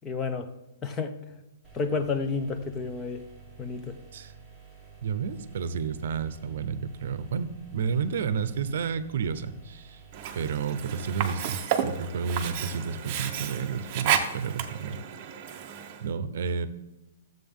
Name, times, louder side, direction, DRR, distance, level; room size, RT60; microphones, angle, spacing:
voice 1, 0.0-0.5 0.8-1.2 1.7-3.3 3.6-4.0, left 4 dB, 15° left, 8 dB, 0.6 m, -30 dB
sound 1, 1.6-10.7, right 5 dB, 5° right, 1.8 m, -51 dB
voice 2, 5.0-10.0 10.4-15.0 16.0-16.7, right 6 dB, 60° right, 14 dB, 0.7 m, -31 dB
Sink (filling or washing), 10.1-16.1, right 8 dB, 30° right, 0.8 m, -32 dB
13.0 x 7.7 x 3.7 m, 1.0 s
hypercardioid pair, 170°, 0 cm